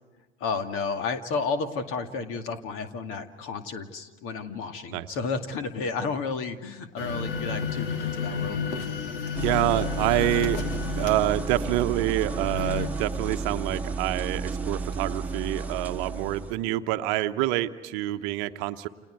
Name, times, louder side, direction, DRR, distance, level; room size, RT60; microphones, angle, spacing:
voice 1, 0.4-8.6, left 4 dB, 45° left, 7 dB, 2.3 m, -32 dB
sound 1, 7.0-12.9, left 6 dB, 70° left, 2.8 m, -32 dB
sound 2, 9.3-16.5, right 4 dB, 5° right, 1.7 m, -32 dB
voice 2, 9.4-10.6 11.0-18.9, right 15 dB, 50° right, 10 dB, 1.1 m, -27 dB
30.0 x 28.5 x 4.7 m, 1.3 s
figure-of-eight pair, 75°, 30 cm